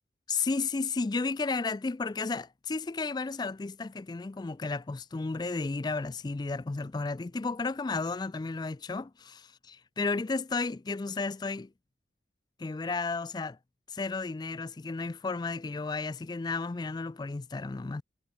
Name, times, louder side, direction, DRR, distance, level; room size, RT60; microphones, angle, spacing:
voice 1, 0.3-11.7 12.6-13.6 13.9-18.0, left 4 dB, 20° left, 0.3 m, -33 dB
head